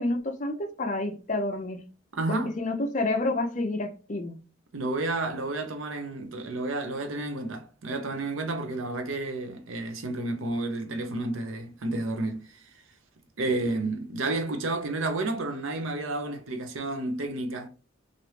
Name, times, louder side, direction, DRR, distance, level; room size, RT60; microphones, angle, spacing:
voice 1, 0.0-1.8 2.3-4.4, left 2 dB, 40° left, 0.6 m, -29 dB
voice 2, 2.1-2.5 4.7-12.6 13.4-17.7, right 2 dB, 85° right, 0.7 m, -31 dB
3.2 x 2.5 x 2.8 m
head